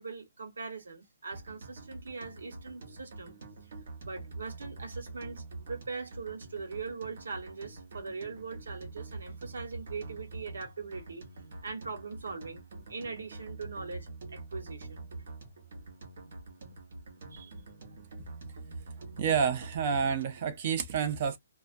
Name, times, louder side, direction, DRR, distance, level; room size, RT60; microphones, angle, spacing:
voice 1, 0.0-3.3 4.0-11.2 11.6-12.6 12.9-15.1 17.3-17.5, right 4 dB, 85° right, 1.1 m, -41 dB
sound 1, 1.3-20.5, right 3 dB, 55° right, 0.9 m, -45 dB
voice 2, 19.2-21.4, right 6 dB, 30° right, 0.4 m, -29 dB
2.4 x 2.1 x 2.5 m
hypercardioid pair, 170°, 0 cm